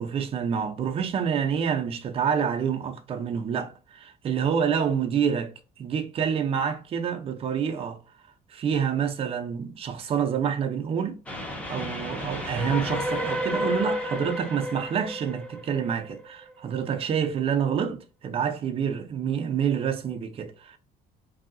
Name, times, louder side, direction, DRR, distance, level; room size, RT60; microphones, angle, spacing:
voice 1, 0.0-5.5 5.8-8.0 8.5-11.2 11.7-20.8, right 7 dB, 35° right, 0.5 m, -27 dB
Train, 11.3-16.5, left 1 dB, 10° left, 0.6 m, -31 dB
3.2 x 2.7 x 2.5 m
cardioid pair, 155°, 17 cm